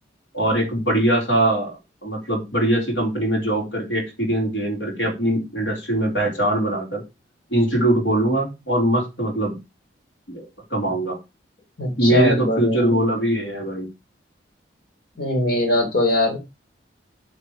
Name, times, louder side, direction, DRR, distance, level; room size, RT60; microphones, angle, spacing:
voice 1, 0.3-7.0 7.5-9.5 10.3-11.2 12.0-13.9, right 1 dB, 75° left, -1 dB, 4.0 m, -22 dB
voice 2, 11.8-12.9 15.2-16.4, left 1 dB, 55° left, 0 dB, 3.5 m, -21 dB
9.6 x 5.1 x 4.9 m, 0.25 s
head